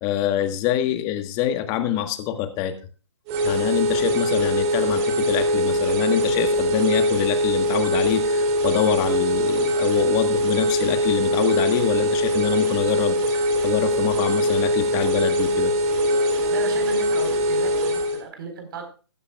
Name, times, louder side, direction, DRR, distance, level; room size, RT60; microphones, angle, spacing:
voice 1, 0.0-2.7 3.4-15.7, left 11 dB, 25° left, 9 dB, 1.4 m, -25 dB
sound 1, 3.3-18.2, equal, 30° right, 3.0 m, -22 dB
voice 2, 16.5-18.8, right 4 dB, 50° right, 5 dB, 4.3 m, -36 dB
15.0 x 13.0 x 2.4 m, 0.34 s
figure-of-eight pair, 140°, 15 cm